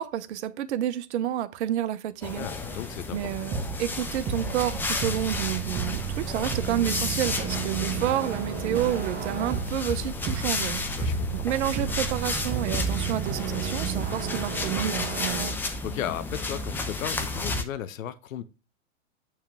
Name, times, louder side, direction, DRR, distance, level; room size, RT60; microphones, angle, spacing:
voice 1, 0.0-2.5 3.1-10.8 11.3-15.5, right 12 dB, 55° right, 0.8 m, -29 dB
sound 1, 2.2-17.6, left 3 dB, 5° left, 0.4 m, -32 dB
voice 2, 2.4-3.3 11.0-11.4 15.8-18.4, left 10 dB, 75° left, 0.8 m, -35 dB
sound 2, 3.5-15.5, right 7 dB, 20° right, 1.1 m, -33 dB
9.1 x 3.3 x 5.9 m
hypercardioid pair, 125°, 40 cm